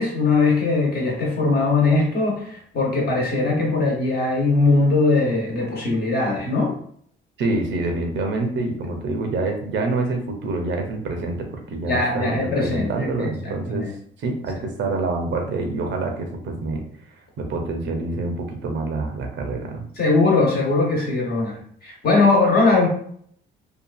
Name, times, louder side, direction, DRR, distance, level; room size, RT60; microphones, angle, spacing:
voice 1, 0.0-6.7 11.8-13.9 20.0-22.9, left 3 dB, 50° left, -2 dB, 1.1 m, -20 dB
voice 2, 7.4-13.9 14.2-16.8 17.4-19.8, right 3 dB, 70° right, 3 dB, 0.7 m, -26 dB
2.7 x 2.4 x 2.4 m, 0.62 s
cardioid pair, 90°, 20 cm